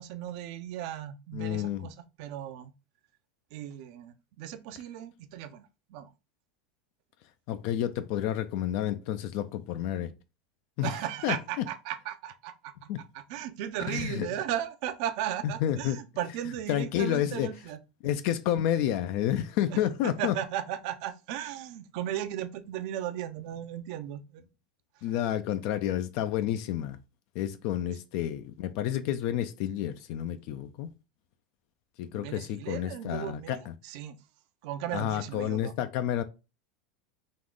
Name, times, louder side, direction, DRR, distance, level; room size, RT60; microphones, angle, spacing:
voice 1, 0.0-2.7 3.5-6.1 10.8-17.8 19.7-24.5 32.1-34.2 34.6-35.7, right 11 dB, 60° right, 0.6 m, -36 dB
voice 2, 1.3-1.9 7.5-10.1 10.8-10.9 11.2-11.6 12.9-13.0 13.9-14.3 15.4-16.0 16.7-17.5 18.0-20.4 25.0-27.0 27.4-30.9 32.0-33.7 34.9-36.2, left 11 dB, 60° left, 0.4 m, -30 dB
3.7 x 2.4 x 3.6 m
supercardioid pair, 115°, 4 cm